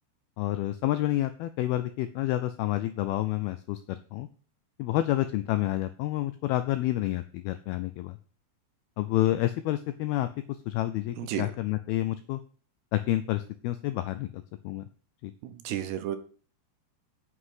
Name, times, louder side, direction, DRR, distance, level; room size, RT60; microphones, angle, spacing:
voice 1, 0.4-4.3 4.8-8.2 9.0-10.3 10.7-12.4 12.9-14.8 15.2-15.3, left 15 dB, 85° left, 11 dB, 2.2 m, -29 dB
voice 2, 15.4-16.2, right 11 dB, 75° right, 9 dB, 3.0 m, -32 dB
8.8 x 7.6 x 8.0 m, 0.42 s
omnidirectional pair, 5.1 m